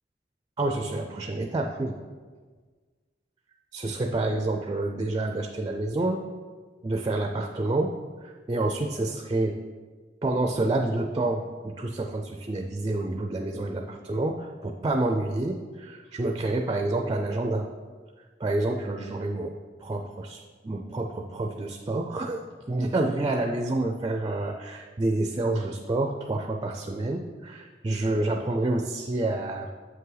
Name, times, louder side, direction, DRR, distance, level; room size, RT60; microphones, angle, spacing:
voice 1, 0.6-2.0 3.7-6.3 6.8-9.6 10.2-17.7 18.4-19.5 19.8-29.7, right 2 dB, 25° right, 4 dB, 0.4 m, -28 dB
7.5 x 5.5 x 3.9 m, 1.5 s
head